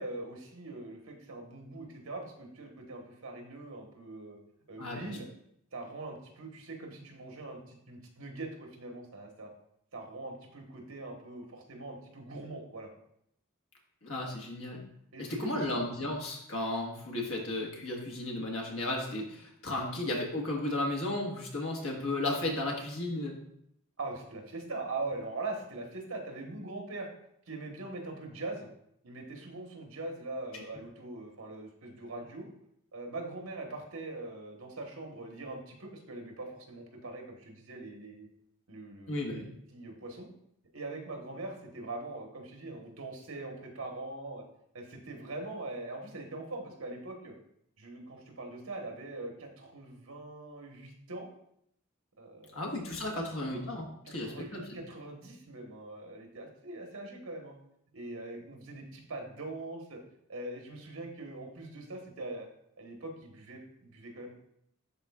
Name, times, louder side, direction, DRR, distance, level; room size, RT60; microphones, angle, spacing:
voice 1, 0.0-4.4 4.7-5.3 5.7-9.5 9.9-12.9 15.1-15.8 24.0-27.1 27.5-28.7 29.0-32.5 32.9-38.3 38.7-40.3 40.7-44.4 44.7-47.3 47.8-51.3 52.2-53.6 54.0-57.5 57.9-60.0 60.3-62.5 62.8-64.3, right 2 dB, 80° right, 2 dB, 1.3 m, -42 dB
voice 2, 4.8-5.2 14.0-14.8 15.2-23.4 39.1-39.5 52.5-54.8, left 1 dB, 75° left, 0 dB, 1.4 m, -34 dB
11.0 x 4.1 x 2.4 m, 0.73 s
head